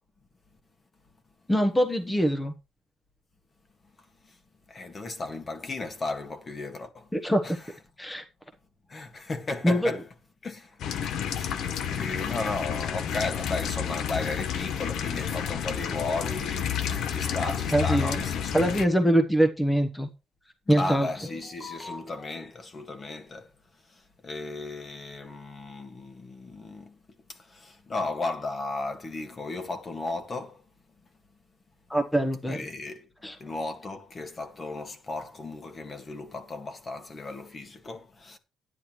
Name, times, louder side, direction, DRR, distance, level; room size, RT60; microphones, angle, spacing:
voice 1, 1.5-2.5 7.1-7.6 8.0-8.2 9.6-9.9 17.7-18.2 18.5-20.1 20.7-21.1 21.8-21.9 31.9-32.7 33.2-33.4, equal, 10° left, 1.1 m, -23 dB
voice 2, 4.7-7.1 7.4-7.6 8.9-10.0 10.4-10.7 11.2-11.5 11.9-18.6 20.7-23.5 24.2-26.9 27.5-30.6 32.5-38.4, left 3 dB, 35° left, 1.9 m, -35 dB
sound 1, 10.8-18.8, left 8 dB, 75° left, 0.8 m, -30 dB
12.0 x 9.9 x 3.1 m
cardioid pair, 90°, 0 cm